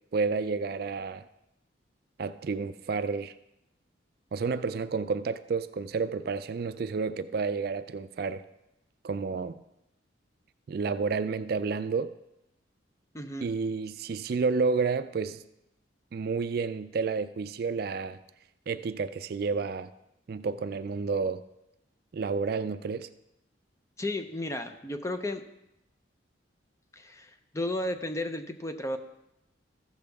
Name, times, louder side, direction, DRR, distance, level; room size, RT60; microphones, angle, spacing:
voice 1, 0.1-1.2 2.2-3.3 4.3-8.4 9.0-9.6 10.7-12.1 13.4-15.4 16.1-18.2 18.7-19.9 20.3-21.4 22.1-23.1, right 4 dB, 55° right, 12 dB, 0.3 m, -30 dB
voice 2, 13.1-13.5 24.0-25.5 26.9-29.0, left 1 dB, 15° left, 7 dB, 0.6 m, -33 dB
14.5 x 6.8 x 3.5 m, 0.86 s
head